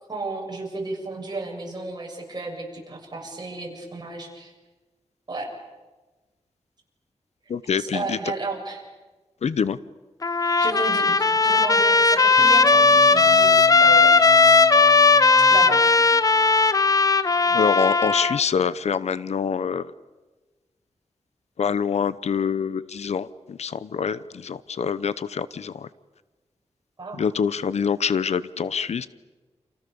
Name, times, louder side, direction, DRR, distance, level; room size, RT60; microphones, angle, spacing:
voice 1, 0.1-4.5 5.3-5.5 7.8-8.8 10.6-11.0 11.4-14.2 15.5-15.8 27.0-27.2, right 3 dB, 35° right, 0 dB, 7.1 m, -33 dB
voice 2, 7.5-8.2 9.4-9.8 17.5-19.9 21.6-25.9 27.1-29.1, left 6 dB, 75° left, 16 dB, 0.8 m, -25 dB
Trumpet, 10.2-18.4, left 4 dB, 30° left, 0.9 m, -17 dB
sound 1, 12.4-17.2, right 3 dB, 20° right, 6.0 m, -41 dB
29.0 x 28.5 x 7.1 m, 1.2 s
wide cardioid pair, 135°, 11 cm